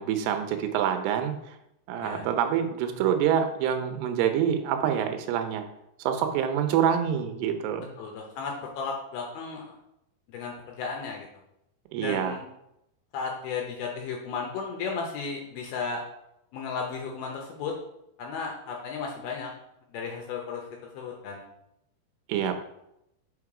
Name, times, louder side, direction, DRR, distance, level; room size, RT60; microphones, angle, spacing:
voice 1, 0.0-1.6 1.9-5.6 6.0-7.9 11.9-12.4 22.3-22.5, right 9 dB, 80° right, 7 dB, 2.7 m, -26 dB
voice 2, 8.0-9.8 10.3-11.3 12.0-12.4 13.1-16.0 16.5-17.7 18.2-19.5 19.9-20.6 20.9-21.4, left 5 dB, 75° left, 0 dB, 2.5 m, -34 dB
5.6 x 5.1 x 4.9 m, 0.82 s
omnidirectional pair, 4.8 m